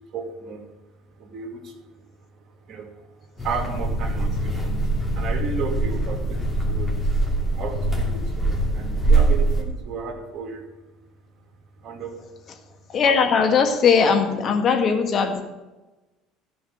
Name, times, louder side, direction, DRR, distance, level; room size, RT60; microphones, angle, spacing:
voice 1, 0.1-0.6 1.2-2.0 2.7-3.0 3.4-4.8 5.1-7.1 7.6-10.6 11.8-12.1, right 5 dB, 50° right, 3 dB, 2.4 m, -34 dB
sound 1, 3.4-9.6, right 2 dB, 10° left, 2.8 m, -23 dB
voice 2, 12.9-15.4, left 6 dB, 45° left, 5 dB, 1.7 m, -19 dB
13.5 x 5.4 x 7.9 m, 1.1 s
hypercardioid pair, 65°, 0 cm